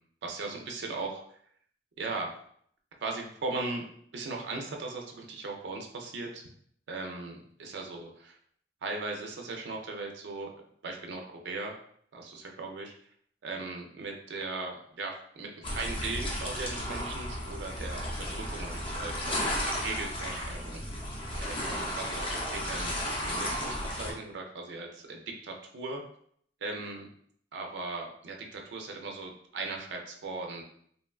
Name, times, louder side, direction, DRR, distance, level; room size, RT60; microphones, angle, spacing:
voice 1, 0.2-1.4 2.0-2.3 3.0-3.8 4.1-6.4 6.9-8.3 8.8-10.5 10.8-11.7 12.1-12.9 13.4-21.1 21.4-26.0 26.6-27.1 27.5-30.6, right 3 dB, 70° right, 2 dB, 0.4 m, -38 dB
sound 1, 15.6-24.1, equal, 30° left, 0.5 m, -34 dB
3.0 x 2.1 x 2.3 m, 0.64 s
head